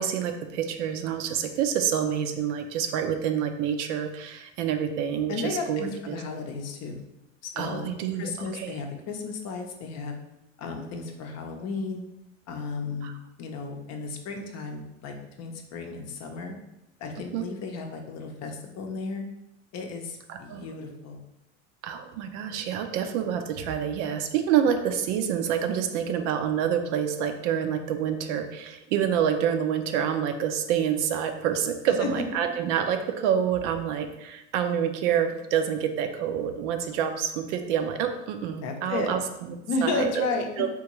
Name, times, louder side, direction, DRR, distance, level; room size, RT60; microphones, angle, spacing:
voice 1, 0.0-6.2 7.6-8.8 13.0-13.1 17.3-17.4 20.3-20.7 21.8-39.6 39.8-40.3 40.6-40.7, right 8 dB, 65° right, 7 dB, 0.6 m, -27 dB
voice 2, 5.3-7.0 7.5-7.9 8.2-10.1 10.6-12.0 12.5-13.1 13.4-16.5 17.0-19.2 19.7-21.2 32.0-32.2 38.6-39.1 39.7-40.5, left 4 dB, 40° left, 3 dB, 0.6 m, -33 dB
3.6 x 2.5 x 3.0 m, 0.90 s
hypercardioid pair, 85°, 39 cm